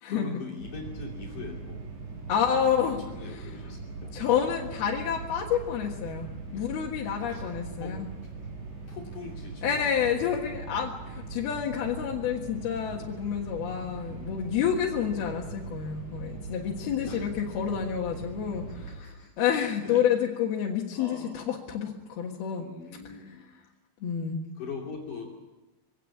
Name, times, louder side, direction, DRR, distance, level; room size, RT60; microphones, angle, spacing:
voice 1, 0.1-1.8 2.3-4.1 4.5-4.7 6.5-6.7 7.3-7.4 7.8-8.0 8.9-10.8 12.9-13.2 14.0-14.4 17.0-17.3 18.5-19.4 19.8-20.1 20.9-21.5 22.6-23.5 24.6-25.3, left 4 dB, 55° left, -2 dB, 4.3 m, -43 dB
sound 1, 0.6-18.9, right 4 dB, 65° right, 9.9 m, -41 dB
voice 2, 2.3-3.5 4.1-8.0 9.6-18.9 19.4-22.7 24.0-24.5, left 8 dB, 80° left, -2 dB, 3.6 m, -29 dB
23.5 x 17.0 x 8.6 m, 1.1 s
omnidirectional pair, 4.4 m